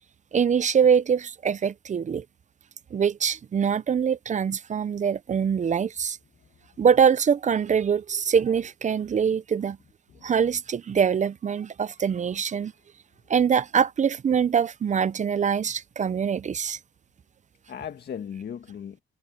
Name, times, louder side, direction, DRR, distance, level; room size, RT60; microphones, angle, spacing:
voice 1, 0.3-2.2 2.9-6.2 6.8-9.8 10.2-12.7 13.3-16.8, right 7 dB, 35° right, 0.6 m, -23 dB
voice 2, 6.3-6.8 9.0-9.2 10.1-10.6 12.0-12.1 17.7-19.0, left 8 dB, 55° left, 1.8 m, -39 dB
cardioid pair, 90°, 20 cm